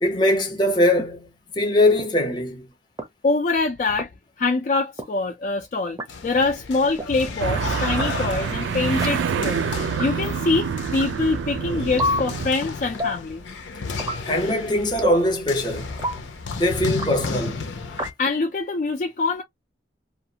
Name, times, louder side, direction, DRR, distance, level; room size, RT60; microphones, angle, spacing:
voice 1, 0.0-2.6 14.2-16.0 16.5-17.6, left 1 dB, 25° left, 0.7 m, -21 dB
sound 1, 1.0-1.1 2.0-2.1 3.0-3.1 4.0-4.1 5.0-5.1 6.0-6.1 7.0-7.1 8.0-8.1 9.0-9.1 10.0-10.1 11.0-11.1 12.0-12.2 13.0-13.2 14.0-14.2 15.0-15.2 16.0-16.2 17.0-17.1 18.0-18.1, equal, 20° right, 0.5 m, -26 dB
voice 2, 3.2-4.1 4.4-6.0 6.2-9.6 10.0-13.4 18.2-19.4, left 3 dB, 45° left, 0.3 m, -24 dB
sound 2, 6.1-18.1, left 4 dB, 85° left, 0.6 m, -34 dB
sound 3, 7.4-12.5, right 6 dB, 80° right, 0.3 m, -26 dB
2.5 x 2.3 x 2.7 m
head